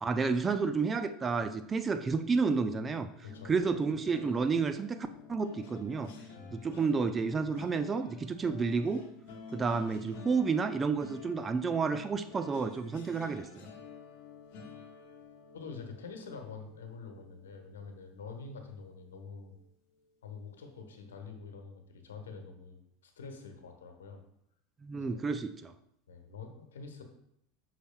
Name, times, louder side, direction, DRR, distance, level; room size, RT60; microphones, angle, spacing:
voice 1, 0.0-3.1 3.5-6.1 6.5-9.0 9.5-13.7 24.8-25.7, right 4 dB, 25° right, 9 dB, 0.5 m, -30 dB
voice 2, 3.2-3.6 6.4-6.6 15.5-19.5 20.2-24.2 24.9-25.3 26.1-27.0, left 4 dB, 75° left, 5 dB, 1.2 m, -46 dB
sound 1, 3.2-18.4 18.8-19.1 19.3-19.6, left 5 dB, 60° left, 1.3 m, -51 dB
8.2 x 5.9 x 2.3 m, 0.73 s
figure-of-eight pair, 80°, 0 cm